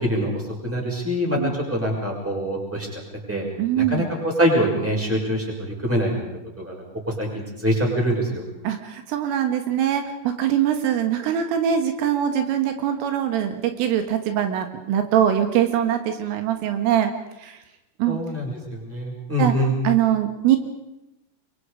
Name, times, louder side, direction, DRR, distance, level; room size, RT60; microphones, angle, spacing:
voice 1, 0.0-3.0 3.3-3.4 3.8-6.2 6.6-8.4 18.1-19.8, equal, 5° right, -1 dB, 5.8 m, -24 dB
voice 2, 3.6-4.1 8.6-17.1 17.4-17.6 18.0-18.2 19.4-19.5 19.9-20.6, right 10 dB, 80° right, 6 dB, 4.0 m, -22 dB
27.0 x 23.5 x 5.1 m, 0.90 s
omnidirectional pair, 5.9 m